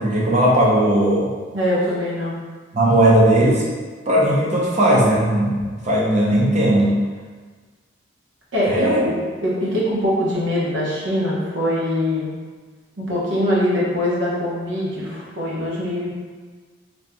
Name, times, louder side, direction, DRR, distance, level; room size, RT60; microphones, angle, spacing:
voice 1, 0.0-1.3 2.7-3.6 4.1-6.9 8.7-9.0, right 1 dB, 35° right, -5 dB, 0.6 m, -17 dB
voice 2, 1.5-2.3 8.5-12.3 13.0-16.1, left 1 dB, 70° right, -7 dB, 0.9 m, -22 dB
3.0 x 2.5 x 2.2 m, 1.5 s
head